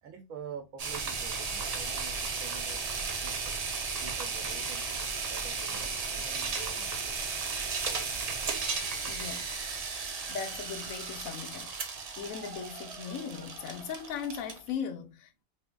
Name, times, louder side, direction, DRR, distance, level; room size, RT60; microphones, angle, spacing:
voice 1, 0.0-3.5 4.0-7.2, right 7 dB, 90° right, 1.2 m, -47 dB
sound 1, 0.8-14.7, right 4 dB, 60° right, 0.4 m, -35 dB
voice 2, 9.1-9.5 10.3-11.7 12.2-15.4, left 7 dB, 90° left, 1.1 m, -38 dB
3.5 x 3.2 x 2.2 m
omnidirectional pair, 1.4 m